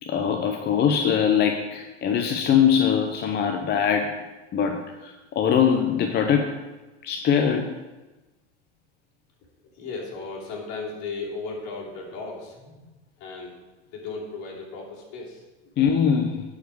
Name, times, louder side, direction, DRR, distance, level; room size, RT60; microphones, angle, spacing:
voice 1, 0.0-4.2 4.5-6.6 7.0-7.8 15.8-16.4, left 7 dB, 30° left, 4 dB, 0.7 m, -22 dB
voice 2, 9.7-12.8 13.2-13.6 13.9-15.4, left 4 dB, 55° left, -4 dB, 3.0 m, -35 dB
11.5 x 4.9 x 4.7 m, 1.1 s
hypercardioid pair, 105°, 35 cm